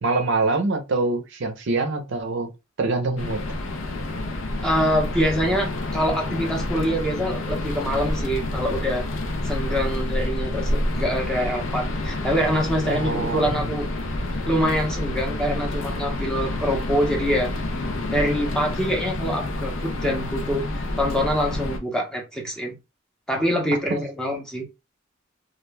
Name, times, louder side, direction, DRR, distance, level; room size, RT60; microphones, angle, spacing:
voice 1, 0.0-2.5 2.8-3.4 12.9-13.6 23.9-24.0, right 3 dB, 60° right, 0.6 m, -25 dB
sound 1, 3.2-21.8, left 1 dB, 70° left, 0.6 m, -28 dB
voice 2, 4.6-9.1 9.4-13.9 14.5-17.5 18.1-22.8 23.3-24.6, equal, 5° left, 0.7 m, -25 dB
2.3 x 2.2 x 3.1 m
head